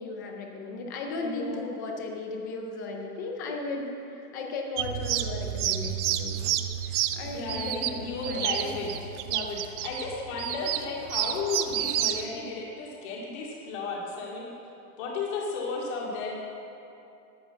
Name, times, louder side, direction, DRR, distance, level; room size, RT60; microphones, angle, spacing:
voice 1, 0.0-6.6 6.8-8.9, left 3 dB, 15° left, 1 dB, 0.3 m, -36 dB
voice 2, 1.2-1.7 7.3-14.5 15.0-16.4, left 3 dB, 45° left, -3 dB, 2.4 m, -34 dB
sound 1, 4.8-12.2, right 11 dB, 50° right, 0.7 m, -30 dB
13.0 x 8.0 x 7.8 m, 2.8 s
supercardioid pair, 165°, 46 cm